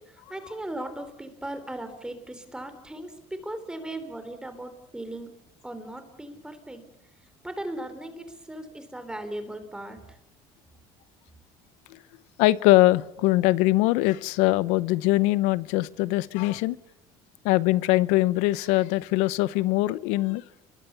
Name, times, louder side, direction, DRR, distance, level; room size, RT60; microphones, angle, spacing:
voice 1, 0.0-5.3 5.6-6.8 7.4-10.2, right 1 dB, 5° right, 9 dB, 3.8 m, -37 dB
voice 2, 12.4-16.8 17.4-20.4, left 18 dB, 90° left, 18 dB, 0.9 m, -22 dB
30.0 x 22.5 x 7.1 m, 0.85 s
cardioid pair, 120°, 11 cm